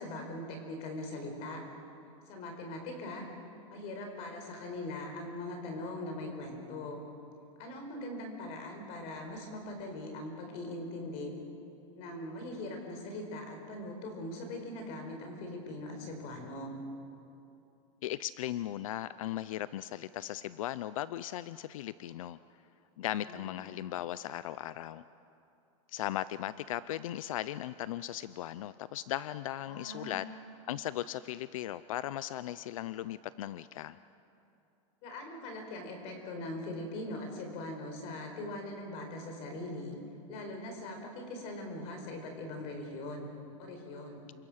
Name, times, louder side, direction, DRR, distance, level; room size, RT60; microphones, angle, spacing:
voice 1, 0.0-1.6 2.3-3.3 3.7-7.0 7.6-11.3 11.9-16.7 23.3-23.5 29.7-30.3 35.0-40.0 40.3-43.3 43.6-44.3, left 1 dB, 40° left, 4 dB, 4.9 m, -41 dB
voice 2, 18.0-22.4 23.0-25.0 25.9-30.2 30.7-34.0, left 13 dB, 85° left, 15 dB, 0.6 m, -37 dB
28.0 x 24.5 x 6.5 m, 2.7 s
supercardioid pair, 170°, 17 cm